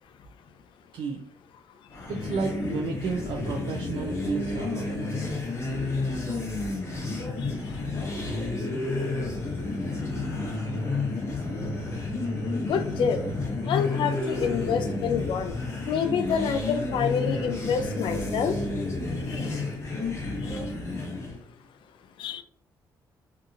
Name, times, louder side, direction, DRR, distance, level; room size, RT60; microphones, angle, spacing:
sound 1, 1.9-21.4, left 2 dB, 30° left, 0.8 m, -30 dB
voice 1, 2.1-5.0, right 5 dB, 70° right, 1 dB, 0.4 m, -32 dB
voice 2, 12.5-13.2 13.7-15.5 15.9-18.5 19.3-19.5 20.5-20.6 22.2-22.4, left 6 dB, 70° left, 8 dB, 0.3 m, -27 dB
2.7 x 2.6 x 2.4 m, 0.65 s
cardioid pair, 95°, 9 cm